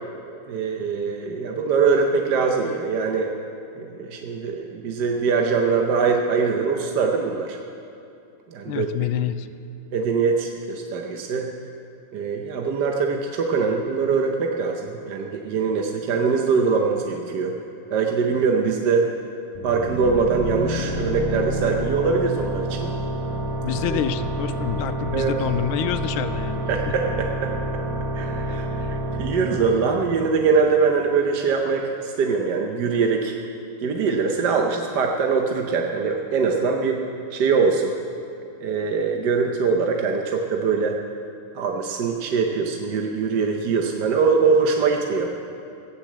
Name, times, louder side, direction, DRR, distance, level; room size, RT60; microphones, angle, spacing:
voice 1, 0.5-3.3 3.8-7.6 8.5-9.1 9.9-11.5 12.1-17.5 17.9-19.0 19.6-22.9 23.9-24.0 25.1-25.3 26.7-27.5 28.1-33.3 33.8-37.0 37.3-37.9 38.6-41.0 41.5-45.3, right 5 dB, 60° right, 2 dB, 1.3 m, -22 dB
voice 2, 8.7-9.5 23.6-26.9 28.5-28.6 29.3-29.5, left 10 dB, 80° left, 10 dB, 1.5 m, -27 dB
sound 1, 19.5-30.9, right 1 dB, 15° left, 2.6 m, -29 dB
15.0 x 10.0 x 7.4 m, 2.7 s
omnidirectional pair, 2.4 m